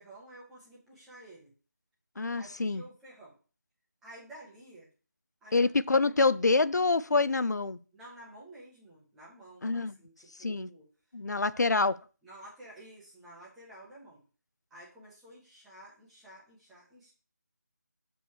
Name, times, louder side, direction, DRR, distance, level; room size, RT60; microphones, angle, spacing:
voice 1, 0.0-1.5 2.4-3.3 4.0-4.9 5.4-5.7 7.9-10.9 11.3-11.4 11.7-11.9 12.2-14.2 14.7-17.1, right 1 dB, ahead, 0.6 m, -51 dB
voice 2, 2.2-2.8 5.5-7.8 9.6-10.0 10.4-10.7 11.1-12.0, left 3 dB, 70° left, 0.6 m, -26 dB
6.9 x 4.5 x 6.3 m
figure-of-eight pair, 175°, 10 cm